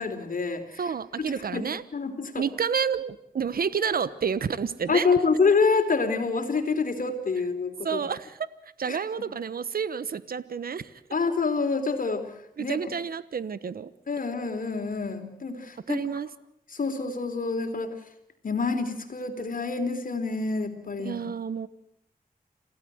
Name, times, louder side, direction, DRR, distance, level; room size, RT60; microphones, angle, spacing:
voice 1, 0.0-2.4 4.9-8.0 8.9-9.0 11.1-12.3 12.6-12.8 14.1-16.0 16.7-17.9 18.4-21.2, left 4 dB, 65° left, 7 dB, 3.9 m, -27 dB
voice 2, 0.8-1.8 2.4-5.1 7.8-8.5 8.8-11.0 12.6-13.9 15.9-16.3 21.0-21.7, right 6 dB, 75° right, 15 dB, 1.1 m, -30 dB
28.0 x 16.5 x 7.9 m, 0.79 s
wide cardioid pair, 75°, 16 cm